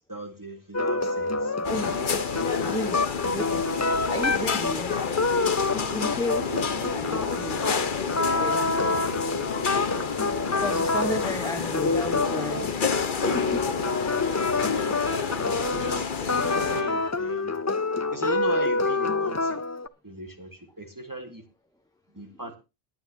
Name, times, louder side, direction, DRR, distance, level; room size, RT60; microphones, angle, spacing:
voice 1, 0.1-2.0 2.7-3.0 3.6-4.1 6.4-6.9 8.7-9.7 11.0-11.4 13.5-14.1 14.7-17.5 18.1-19.6 20.0-21.4 22.1-22.6, right 1 dB, 20° right, 4 dB, 1.6 m, -39 dB
sound 1, 0.7-19.9, left 3 dB, 25° left, 0.4 m, -27 dB
sound 2, 1.6-16.8, left 6 dB, 55° left, 1.1 m, -30 dB
voice 2, 1.6-2.0 2.6-3.0 3.3-3.6 4.1-5.0 5.9-6.5 6.9-7.6 8.3-8.6 10.6-13.1 13.3-13.6, left 1 dB, 5° left, 6 dB, 1.1 m, -33 dB
20.5 x 9.1 x 2.8 m, 0.27 s
omnidirectional pair, 1.1 m